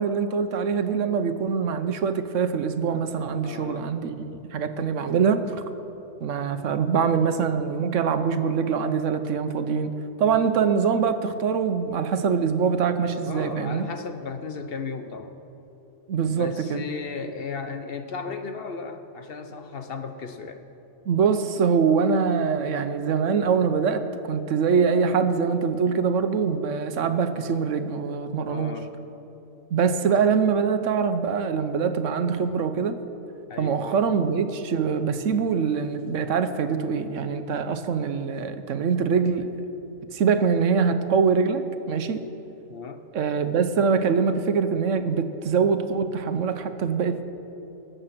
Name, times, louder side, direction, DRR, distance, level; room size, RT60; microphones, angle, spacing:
voice 1, 0.0-5.6 6.2-9.9 10.2-13.9 16.1-16.8 21.1-28.7 29.7-33.0 33.6-39.5 40.1-42.2 43.1-47.2, right 6 dB, 85° right, 10 dB, 1.1 m, -24 dB
voice 2, 3.4-3.9 13.2-15.3 16.3-20.6 28.5-29.0 33.5-34.0 42.7-43.0, left 5 dB, 55° left, 8 dB, 1.0 m, -35 dB
20.0 x 7.9 x 5.9 m, 3.0 s
omnidirectional pair, 1.2 m